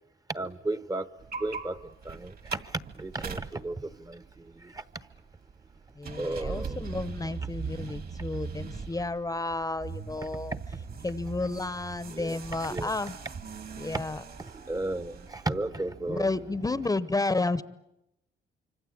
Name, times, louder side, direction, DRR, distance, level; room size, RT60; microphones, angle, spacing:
voice 1, 0.3-1.1 1.4-1.8 2.0-4.8 6.2-6.9 10.5-10.6 12.1-12.9 13.8-14.0 14.4-16.3, right 2 dB, 20° right, 14 dB, 1.0 m, -34 dB
sound 1, 1.2-16.9, right 5 dB, 50° right, 2.0 m, -41 dB
voice 2, 6.0-10.5 11.0-13.1 13.8-14.2 16.1-17.6, left 2 dB, 20° left, 15 dB, 0.9 m, -31 dB
26.0 x 25.5 x 8.7 m, 0.88 s
cardioid pair, 90°, 20 cm